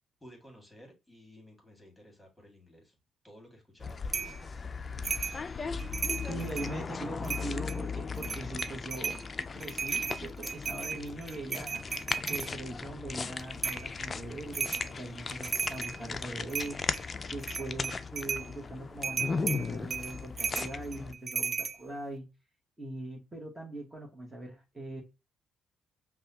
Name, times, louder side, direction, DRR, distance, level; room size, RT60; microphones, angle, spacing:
voice 1, 0.2-3.0 3.2-4.7 6.2-6.8, equal, 10° left, 2.0 m, -55 dB
sound 1, 3.8-21.1, left 4 dB, 35° left, 0.4 m, -37 dB
sound 2, 4.1-4.4 5.0-5.4 5.8-6.7 7.2-7.8 8.2-9.2 9.6-12.5 13.6-13.9 14.5-14.9 15.3-16.0 16.5-17.0 17.4-18.5 19.0-21.8, right 5 dB, 35° right, 0.3 m, -35 dB
voice 2, 6.3-9.2 9.5-16.8 17.3-22.3 22.8-25.0, right 2 dB, 20° right, 1.3 m, -41 dB
5.3 x 2.3 x 2.7 m
cardioid pair, 90°, 0 cm